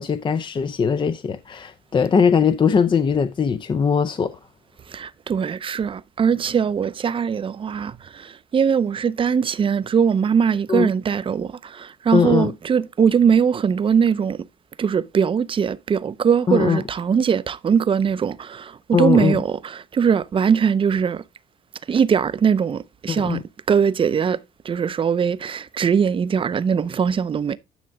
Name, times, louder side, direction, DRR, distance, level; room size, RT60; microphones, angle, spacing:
voice 1, 0.0-4.4 10.7-10.9 12.1-12.5 16.5-16.8 18.9-19.4 23.1-23.4, left 6 dB, 30° left, 0.5 m, -20 dB
voice 2, 4.9-14.5 14.8-21.2 21.9-23.4 23.7-27.6, right 7 dB, 30° right, 0.6 m, -21 dB
10.0 x 6.1 x 3.5 m
cardioid pair, 110°, 17 cm